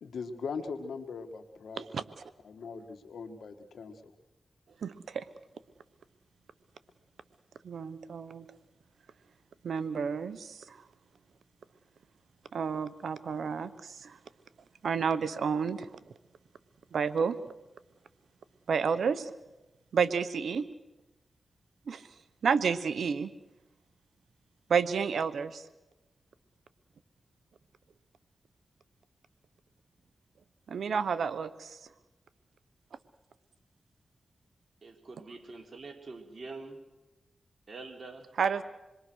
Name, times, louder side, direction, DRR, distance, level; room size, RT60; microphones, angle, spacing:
voice 1, 0.0-1.8 2.4-4.1, left 5 dB, 85° left, 7 dB, 1.9 m, -40 dB
voice 2, 4.8-5.2 7.6-8.5 9.6-10.8 12.5-14.2 14.8-15.9 16.9-17.4 18.7-19.3 19.9-20.7 21.9-22.0 22.4-23.3 24.7-25.6 30.7-31.8 38.4-38.6, right 6 dB, 85° right, 15 dB, 0.9 m, -30 dB
voice 3, 34.8-36.8 37.7-38.3, right 3 dB, 60° right, 5 dB, 3.4 m, -45 dB
27.0 x 22.0 x 6.4 m, 1.0 s
cardioid pair, 45°, 0 cm